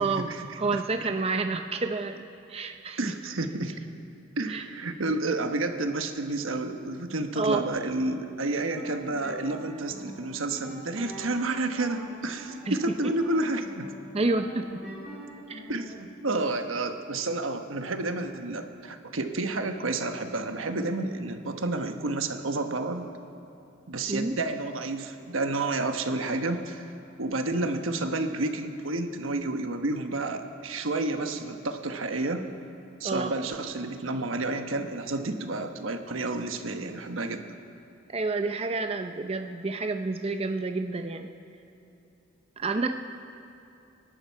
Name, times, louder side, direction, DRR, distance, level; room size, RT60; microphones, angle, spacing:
voice 1, 0.0-0.4 0.7-0.8 3.0-3.8 4.4-13.9 15.7-23.1 23.9-26.9 27.2-32.5 33.0-37.6, right 2 dB, 85° right, 6 dB, 1.1 m, -30 dB
voice 2, 0.6-3.0 4.5-4.6 7.4-7.6 12.7-12.8 14.1-14.6 15.5-15.6 24.1-24.3 33.0-33.3 38.1-41.3 42.6-42.9, right 3 dB, 30° right, 7 dB, 0.5 m, -29 dB
sound 1, 8.6-16.0, equal, ahead, 4.4 m, -43 dB
27.0 x 11.5 x 4.6 m, 2.9 s
head